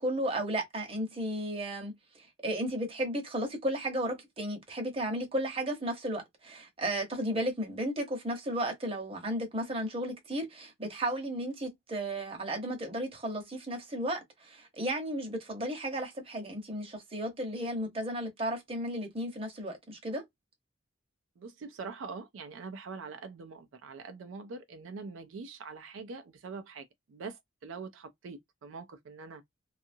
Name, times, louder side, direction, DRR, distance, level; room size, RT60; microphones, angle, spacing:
voice 1, 0.0-1.9 2.2-20.2, right 1 dB, 30° right, 0.9 m, -34 dB
voice 2, 21.4-29.4, right 4 dB, 80° right, 0.4 m, -44 dB
2.7 x 2.4 x 2.6 m
head